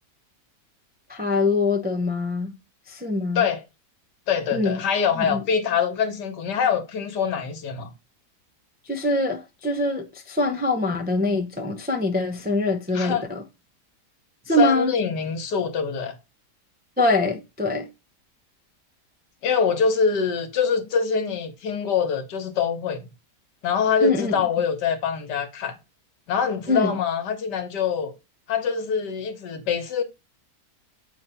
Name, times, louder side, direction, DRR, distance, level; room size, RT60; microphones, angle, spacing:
voice 1, 1.1-2.5 2.9-3.5 4.5-4.8 5.2-5.4 8.9-13.4 14.5-14.9 17.0-17.9 24.0-24.4 26.7-27.0, left 2 dB, 15° right, 0.3 m, -24 dB
voice 2, 4.3-7.9 12.9-13.3 14.6-16.2 19.4-23.1 23.6-25.7 26.3-28.1 28.5-30.0, left 6 dB, 75° left, 1.7 m, -24 dB
8.4 x 3.1 x 5.5 m
omnidirectional pair, 1.8 m